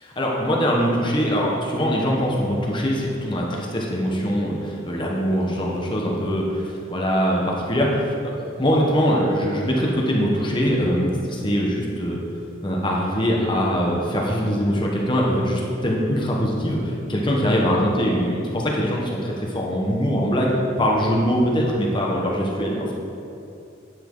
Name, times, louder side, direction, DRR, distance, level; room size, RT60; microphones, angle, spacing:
voice 1, 0.0-12.2 12.6-22.9, equal, 25° left, -2 dB, 1.2 m, -22 dB
10.5 x 8.5 x 3.9 m, 2.7 s
head